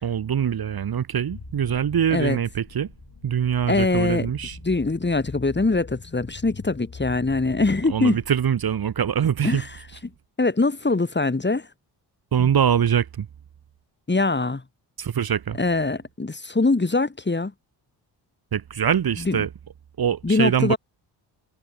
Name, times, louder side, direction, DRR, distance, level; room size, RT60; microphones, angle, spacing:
voice 1, 0.0-2.9 3.2-4.6 7.9-9.6 12.3-13.3 15.0-15.6 18.5-19.5 20.0-20.7, right 8 dB, 55° right, 1.5 m, -23 dB
sound 1, 1.3-8.8, left 5 dB, 40° left, 6.3 m, -42 dB
voice 2, 3.7-4.3 4.6-8.2 9.4-9.7 10.4-11.7 12.4-12.5 14.1-14.6 15.6-17.5 19.2-19.4 20.2-20.8, left 3 dB, 25° left, 6.1 m, -23 dB
cardioid pair, 80°, 44 cm